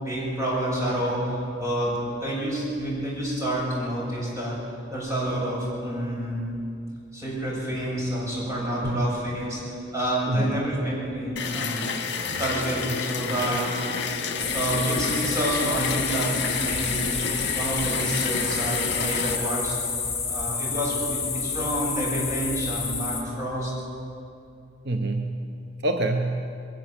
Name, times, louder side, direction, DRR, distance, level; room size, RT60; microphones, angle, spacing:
voice 1, 0.0-4.6 4.9-6.6 7.1-11.9 12.4-13.6 14.5-17.2 17.5-19.7 20.3-23.7, right 1 dB, 15° right, -5 dB, 7.7 m, -28 dB
voice 2, 10.3-10.6 24.8-26.4, right 2 dB, 60° right, 4 dB, 1.1 m, -27 dB
sound 1, 11.4-19.4, left 5 dB, 65° left, 2.0 m, -30 dB
sound 2, 14.4-23.2, left 5 dB, 15° left, 2.7 m, -30 dB
21.0 x 18.0 x 7.8 m, 2.5 s
head